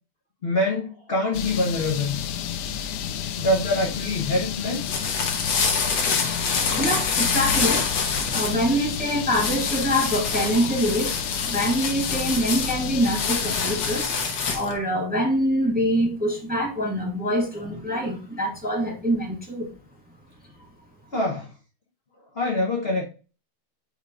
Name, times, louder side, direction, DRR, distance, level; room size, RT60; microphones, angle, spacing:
voice 1, 0.4-2.2 3.3-4.8 5.4-5.5 21.1-21.5 22.3-23.0, left 1 dB, 40° left, 1.0 m, -25 dB
sound 1, 1.3-14.0, left 9 dB, 85° left, 0.9 m, -31 dB
sound 2, 4.6-14.8, left 5 dB, 60° left, 1.7 m, -27 dB
voice 2, 6.8-11.1 11.5-14.1 14.5-19.7, equal, 5° right, 1.4 m, -25 dB
5.3 x 3.7 x 4.8 m
omnidirectional pair, 2.4 m